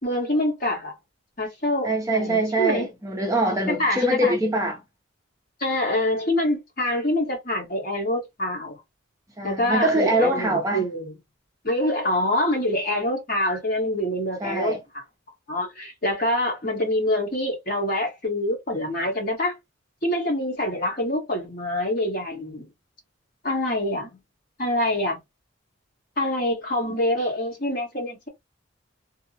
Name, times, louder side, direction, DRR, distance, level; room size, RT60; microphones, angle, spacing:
voice 1, 0.0-0.9 1.4-2.9 3.7-4.4 5.6-8.8 9.4-11.1 11.6-14.8 15.5-19.6 20.0-22.7 23.4-24.2 24.6-25.2 26.2-28.3, left 1 dB, 40° left, 1.4 m, -25 dB
voice 2, 1.8-4.8 9.4-10.8 14.4-14.8, right 1 dB, 15° right, 0.5 m, -23 dB
3.3 x 2.0 x 2.7 m
head